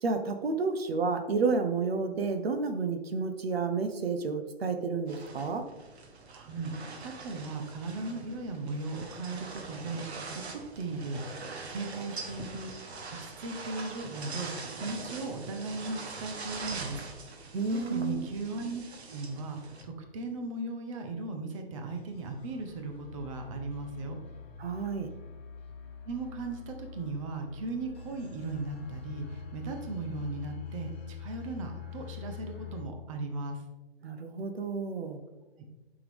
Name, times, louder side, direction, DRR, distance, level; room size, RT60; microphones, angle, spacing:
voice 1, 0.0-5.7 17.5-18.3 24.6-25.1 34.0-35.2, right 4 dB, 70° right, 7 dB, 1.0 m, -30 dB
sound 1, 5.1-19.8, right 4 dB, 90° right, 1.5 m, -43 dB
voice 2, 6.3-6.7 7.0-11.2 11.7-12.7 13.2-17.0 17.3-18.8 19.1-24.2 26.0-33.6 35.6-35.7, right 3 dB, 30° right, 4 dB, 0.9 m, -37 dB
sound 2, 21.9-32.8, left 6 dB, 15° left, 0.4 m, -45 dB
9.2 x 6.0 x 3.5 m, 1.2 s
hypercardioid pair, 165°, 31 cm